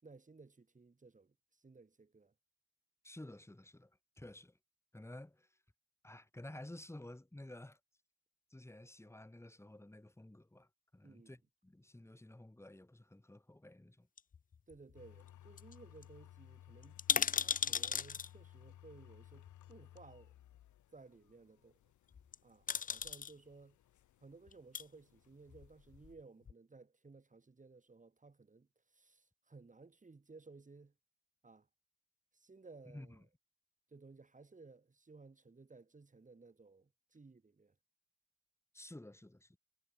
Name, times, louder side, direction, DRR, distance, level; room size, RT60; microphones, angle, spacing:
voice 1, 0.0-2.3 11.0-11.3 14.7-17.0 17.3-20.3 20.9-21.8 22.4-23.8 24.2-30.9 31.4-31.7 32.3-33.3 33.9-37.7, right 3 dB, 25° right, 6.1 m, -59 dB
voice 2, 3.0-3.9 4.2-4.5 4.9-5.5 6.0-7.8 8.5-14.1 32.9-33.2 38.7-39.6, left 1 dB, 10° left, 5.3 m, -52 dB
sound 1, 14.2-15.0 15.3-15.4 15.6-15.7 16.0-16.1 16.8-18.3 19.5-19.6 22.1-22.3 22.7-23.3 24.5-24.8 25.5-26.2 26.5-26.6, left 6 dB, 30° left, 0.6 m, -36 dB
sound 2, 14.9-26.1, left 12 dB, 75° left, 2.6 m, -60 dB
cardioid pair, 90°, 30 cm